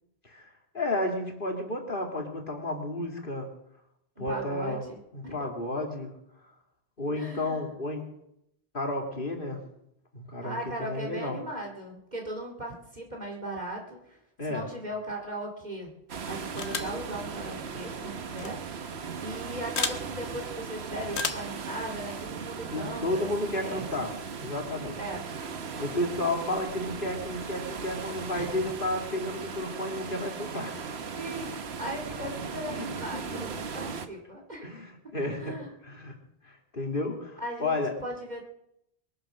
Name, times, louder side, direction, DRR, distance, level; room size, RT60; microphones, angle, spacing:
voice 1, 0.7-3.5 4.2-4.8 5.1-6.1 7.0-8.0 8.7-9.6 10.1-11.4 14.4-14.7 22.7-25.0 25.8-30.9 32.7-32.9 33.1-33.4 34.6-35.6 35.8-36.1 36.4-37.9, left 1 dB, 55° left, 2 dB, 2.6 m, -32 dB
voice 2, 4.2-5.5 7.2-7.7 10.4-14.2 14.5-15.9 16.3-18.6 19.2-23.8 25.0-25.2 28.3-28.5 31.2-34.8 35.4-35.7 37.4-37.7 38.0-38.4, right 1 dB, 40° right, 0 dB, 2.7 m, -38 dB
sound 1, 16.1-34.1, right 5 dB, 75° right, 1.3 m, -38 dB
sound 2, 16.6-17.0 18.3-18.5 19.8-20.0 21.1-21.5, left 4 dB, 80° left, 1.5 m, -31 dB
22.5 x 8.7 x 6.3 m, 0.80 s
omnidirectional pair, 1.1 m